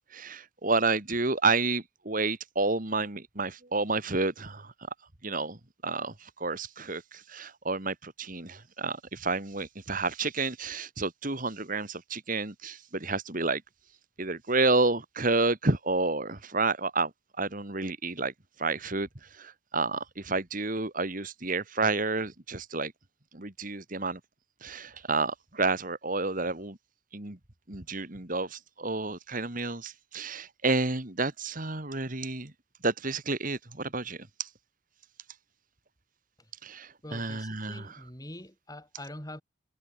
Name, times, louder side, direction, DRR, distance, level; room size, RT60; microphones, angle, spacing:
voice 1, 0.1-4.7 5.2-5.6 5.8-13.6 14.2-17.1 17.4-18.3 18.6-19.1 19.4-22.9 23.3-24.2 24.6-26.8 27.1-27.4 27.7-32.5 32.8-34.5 36.6-37.8, right 3 dB, 40° right, 2.2 m, -30 dB
voice 2, 37.0-39.4, left 1 dB, 20° left, 7.3 m, -44 dB
head